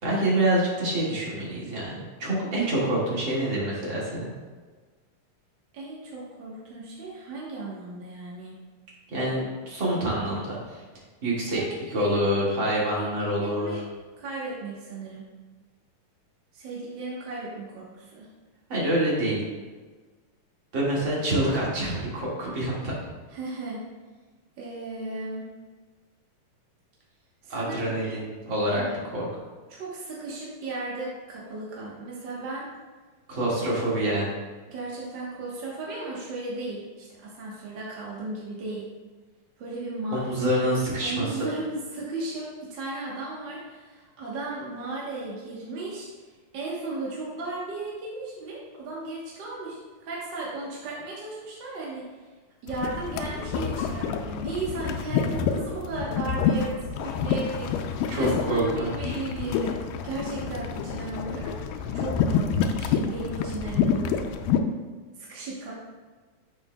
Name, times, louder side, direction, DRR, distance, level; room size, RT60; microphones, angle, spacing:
voice 1, 0.0-4.3 9.1-10.8 11.2-11.6 11.9-13.8 18.7-19.4 20.7-22.9 27.5-28.8 29.1-29.3 33.3-34.4 40.1-41.5 58.1-59.2, right 1 dB, 40° right, -6 dB, 2.3 m, -26 dB
voice 2, 5.7-8.5 11.5-12.2 13.0-13.1 13.4-13.8 14.2-15.2 16.5-18.3 23.3-23.8 24.6-25.5 27.4-28.2 28.7-28.9 29.7-32.7 34.7-38.9 39.6-40.2 40.5-46.1 46.5-52.1 52.6-64.3 65.2-65.7, right 2 dB, 60° right, -5 dB, 1.1 m, -35 dB
sound 1, 52.7-64.6, left 7 dB, 90° left, 2.2 m, -28 dB
10.5 x 6.6 x 2.3 m, 1.4 s
omnidirectional pair, 3.8 m